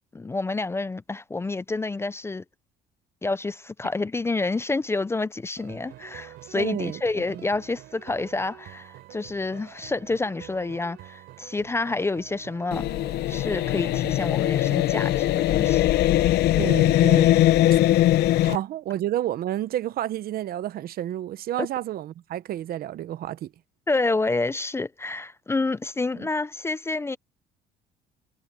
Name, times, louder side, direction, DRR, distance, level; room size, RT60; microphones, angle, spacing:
voice 1, 0.1-2.4 3.2-12.8 13.3-15.9 18.4-18.5 21.6-21.7 23.9-27.2, left 3 dB, 15° left, 0.5 m, -28 dB
sound 1, 5.6-17.2, right 16 dB, 85° right, 3.3 m, -47 dB
voice 2, 6.5-7.4 16.6-17.5 18.4-23.5 26.1-26.3, right 12 dB, 60° right, 0.9 m, -30 dB
sound 2, 12.7-18.6, left 14 dB, 75° left, 0.8 m, -21 dB
cardioid pair, 110°, 17 cm